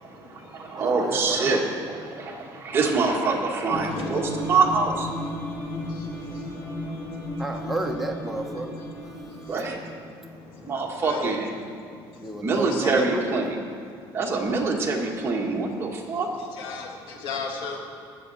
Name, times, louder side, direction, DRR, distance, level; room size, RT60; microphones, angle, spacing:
voice 1, 0.2-5.1 9.5-9.8 10.6-11.5 12.4-13.6 14.1-16.3, right 4 dB, 25° right, -1 dB, 1.6 m, -25 dB
voice 2, 0.8-1.5 7.4-8.8 12.2-13.3, right 2 dB, ahead, 0 dB, 1.1 m, -32 dB
sound 1, 3.7-11.4, left 1 dB, 35° left, 2.0 m, -35 dB
voice 3, 11.0-11.4 12.7-13.0 16.6-17.8, left 5 dB, 75° left, 1 dB, 1.9 m, -34 dB
19.5 x 7.4 x 4.2 m, 2.3 s
cardioid pair, 145°, 9 cm